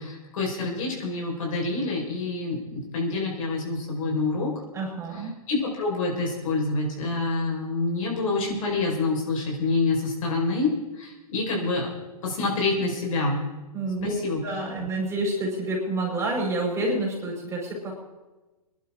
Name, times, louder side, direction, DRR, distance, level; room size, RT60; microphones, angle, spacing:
voice 1, 0.0-4.5 5.5-11.9 12.2-13.4 14.0-14.4, left 3 dB, 60° left, -1 dB, 5.0 m, -27 dB
voice 2, 4.7-5.4 13.7-17.9, right 2 dB, 15° right, -3 dB, 5.0 m, -28 dB
23.0 x 11.5 x 3.8 m, 1.1 s
hypercardioid pair, 130°, 19 cm